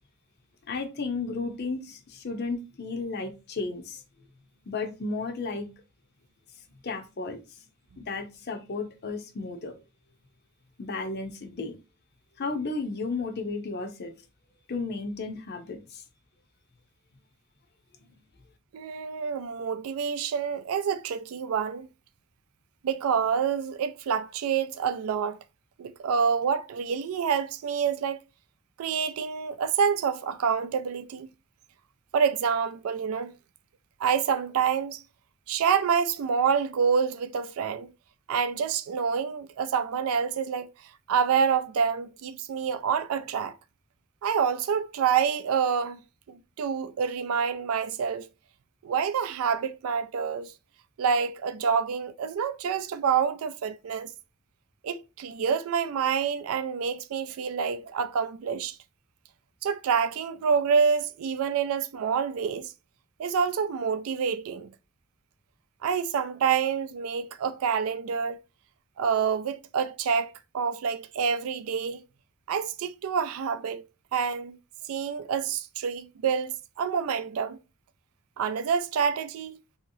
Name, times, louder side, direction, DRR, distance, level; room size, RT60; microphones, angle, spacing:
voice 1, 0.7-4.0 4.7-5.7 6.8-7.4 8.0-9.7 10.8-11.7 12.4-14.1 14.7-16.0, left 3 dB, 50° left, 0.6 m, -33 dB
voice 2, 18.7-21.9 22.8-25.4 25.8-28.2 28.8-31.3 32.1-33.3 34.0-35.0 35.5-37.9 38.3-40.7 41.1-43.5 44.2-46.0 46.3-48.3 48.8-50.5 51.0-54.1 54.8-58.8 59.6-62.7 63.2-64.7 65.8-68.4 69.0-72.0 72.5-73.8 74.1-74.6 74.9-77.6 78.4-79.6, right 6 dB, 80° right, 0.3 m, -27 dB
2.9 x 2.8 x 2.6 m
head